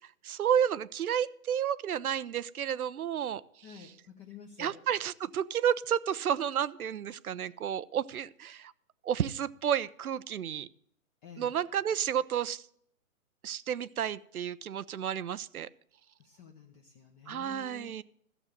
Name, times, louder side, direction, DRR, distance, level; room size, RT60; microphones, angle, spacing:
voice 1, 0.2-3.4 4.6-8.7 9.0-10.7 11.4-12.6 13.4-15.7 17.3-18.0, right 9 dB, 80° right, 18 dB, 0.8 m, -31 dB
voice 2, 3.6-4.8 11.2-11.5 16.2-17.9, left 7 dB, 20° left, 2 dB, 0.9 m, -50 dB
14.0 x 7.4 x 6.5 m, 0.68 s
hypercardioid pair, 145°, 43 cm